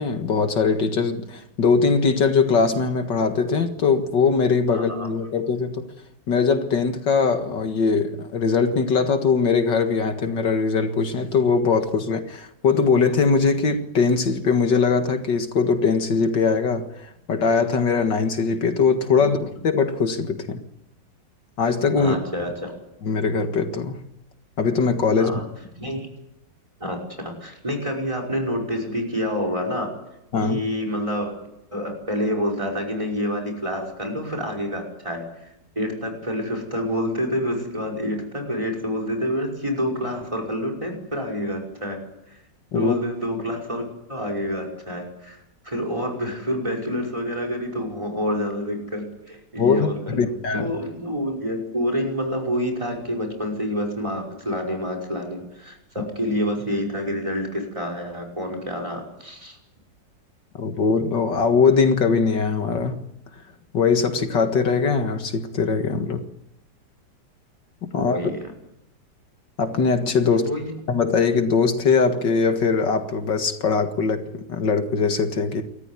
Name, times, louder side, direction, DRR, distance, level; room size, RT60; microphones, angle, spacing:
voice 1, 0.0-5.9 6.3-20.6 21.6-22.2 23.0-24.0 24.6-25.3 30.3-30.6 42.7-42.9 49.6-50.7 60.6-63.0 63.7-66.2 67.8-68.2 69.6-70.5 70.9-75.6, left 5 dB, 75° left, 7 dB, 2.4 m, -21 dB
voice 2, 4.7-5.1 22.0-22.7 25.2-25.5 25.8-26.1 26.8-27.0 27.2-29.9 30.4-31.3 31.7-35.5 35.8-42.0 42.7-43.8 44.1-45.4 45.6-59.6 67.9-68.5 70.3-70.7, equal, 15° right, 3 dB, 5.7 m, -28 dB
29.0 x 14.0 x 9.8 m, 0.85 s
omnidirectional pair, 2.0 m